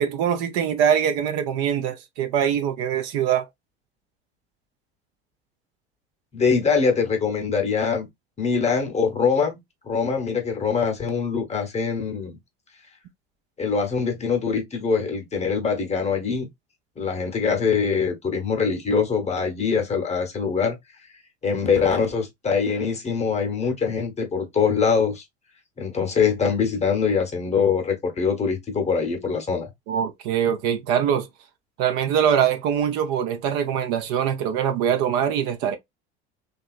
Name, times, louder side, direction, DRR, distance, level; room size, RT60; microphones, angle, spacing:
voice 1, 0.0-3.5 29.9-31.3 31.8-35.8, right 8 dB, 55° right, 0.5 m, -23 dB
voice 2, 6.3-8.1 8.4-9.6 9.8-12.4 13.6-16.5 17.0-20.8 21.4-25.2 25.8-29.7, left 5 dB, 20° left, 0.8 m, -23 dB
2.8 x 2.4 x 2.3 m
hypercardioid pair, 75°, 31 cm